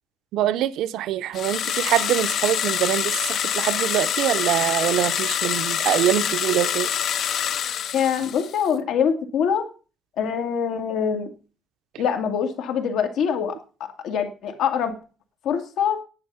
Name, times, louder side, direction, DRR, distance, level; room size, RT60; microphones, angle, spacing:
voice 1, 0.3-6.9, right 12 dB, 80° right, 0.6 m, -24 dB
sound 1, 1.3-8.7, left 9 dB, 50° left, 0.4 m, -26 dB
voice 2, 7.9-9.7 10.2-11.3 12.0-13.6 14.0-14.9 15.4-16.0, left 7 dB, 70° left, 2.1 m, -24 dB
10.5 x 8.7 x 5.5 m
cardioid pair, 165°, 0 cm